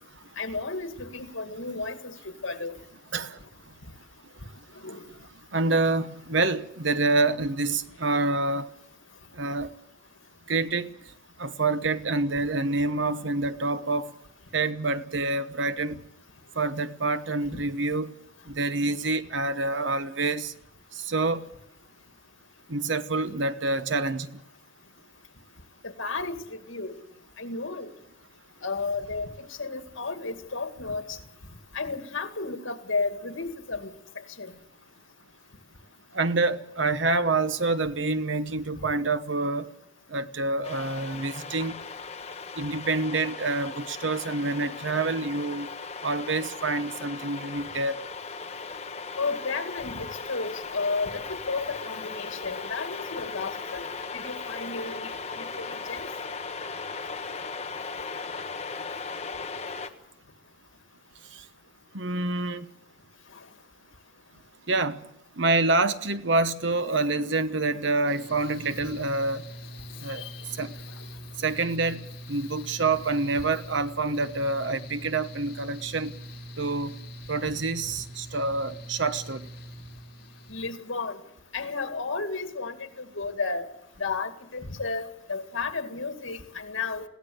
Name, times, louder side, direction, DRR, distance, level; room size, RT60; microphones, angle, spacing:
voice 1, 0.4-2.8 4.8-5.0 17.5-17.6 23.3-23.4 25.8-26.9 27.4-27.9 28.6-31.2 31.7-33.9 34.4-34.5 49.2-53.8 54.1-56.1 67.1-67.3 70.1-70.5 80.5-81.2 81.5-83.7 84.0-87.1, left 4 dB, 85° left, 2.1 m, -33 dB
voice 2, 5.5-8.7 9.4-9.7 10.5-10.9 11.4-14.1 14.5-16.0 16.6-18.1 18.5-20.5 20.9-21.5 22.7-24.4 36.1-39.7 40.1-41.7 42.6-45.7 46.0-48.0 61.9-62.7 64.7-65.0 65.4-69.4 70.0-70.3 70.6-70.7 71.4-76.2 76.6-76.9 77.3-79.5, right 3 dB, 70° right, 1.0 m, -27 dB
sound 1, 40.6-59.9, left 4 dB, 35° left, 1.3 m, -37 dB
Mechanical fan, 68.1-80.6, equal, 50° left, 3.4 m, -43 dB
21.5 x 16.5 x 7.9 m
head